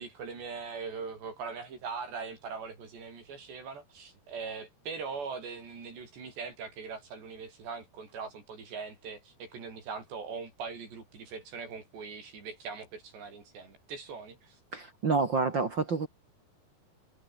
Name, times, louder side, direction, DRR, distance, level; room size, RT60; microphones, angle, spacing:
voice 1, 0.0-14.6, right 5 dB, 85° right, 8.8 m, -41 dB
voice 2, 14.7-16.1, right 4 dB, 45° right, 1.6 m, -28 dB
omnidirectional pair, 4.8 m